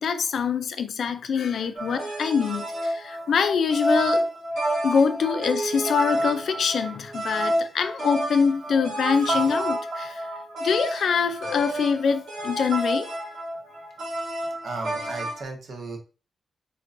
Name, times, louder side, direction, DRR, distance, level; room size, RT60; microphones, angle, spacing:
voice 1, 0.0-4.3 4.8-10.3 10.6-13.1, left 6 dB, 60° left, 0.4 m, -24 dB
sound 1, 1.8-15.4, right 1 dB, 80° right, 1.9 m, -29 dB
voice 2, 14.6-16.0, right 3 dB, 60° right, 1.1 m, -35 dB
4.4 x 3.8 x 2.5 m
wide cardioid pair, 180°, 0 cm